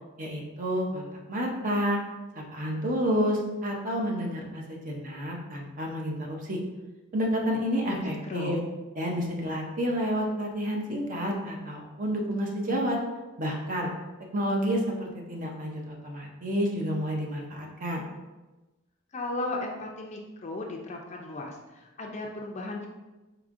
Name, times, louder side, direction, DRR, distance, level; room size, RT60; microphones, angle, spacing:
voice 1, 0.2-2.0 2.3-6.6 7.1-8.6 8.9-13.0 13.4-13.9 14.3-18.0, equal, 40° right, 0 dB, 0.6 m, -30 dB
voice 2, 7.9-8.6 19.1-22.9, left 2 dB, 35° left, 1 dB, 0.5 m, -36 dB
4.8 x 3.5 x 2.5 m, 1.1 s
head